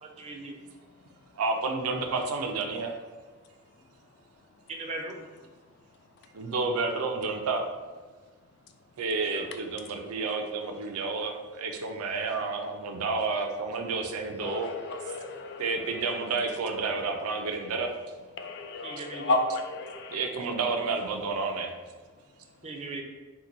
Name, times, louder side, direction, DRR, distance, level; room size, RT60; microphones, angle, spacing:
voice 1, 0.0-0.6 4.7-5.2 9.3-9.5 18.8-19.4 22.6-23.0, right 3 dB, 30° right, 2 dB, 0.3 m, -38 dB
voice 2, 1.4-3.0 6.3-7.7 9.0-14.7 15.6-17.9 20.1-21.8, right 4 dB, 90° right, 4 dB, 0.4 m, -30 dB
voice 3, 14.4-16.2 18.4-20.3, left 2 dB, 50° left, 5 dB, 0.3 m, -32 dB
2.9 x 2.2 x 3.8 m, 1.4 s
head